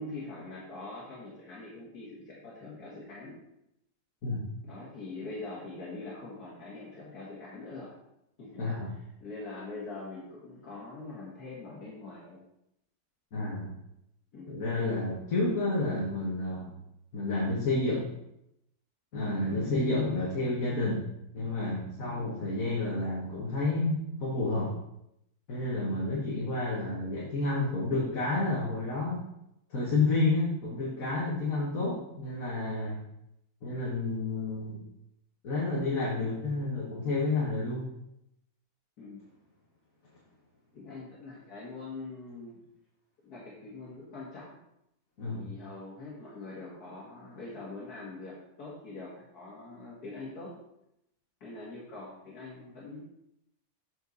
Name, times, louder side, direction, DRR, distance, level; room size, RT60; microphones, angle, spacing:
voice 1, 0.0-3.4 4.6-7.9 8.4-8.6 9.2-12.4 14.3-14.5 39.0-39.2 40.7-42.6 43.2-44.6 45.3-50.5 51.4-53.0, left 3 dB, 85° left, -6 dB, 2.1 m, -43 dB
voice 2, 8.6-8.9 13.3-13.7 14.5-16.7 17.1-18.1 19.1-21.0 21.3-24.8 25.5-29.2 29.7-33.0 33.6-34.8 35.4-37.9 45.2-45.5, left 2 dB, 65° left, -5 dB, 2.0 m, -30 dB
7.9 x 6.5 x 4.0 m, 0.82 s
omnidirectional pair, 1.6 m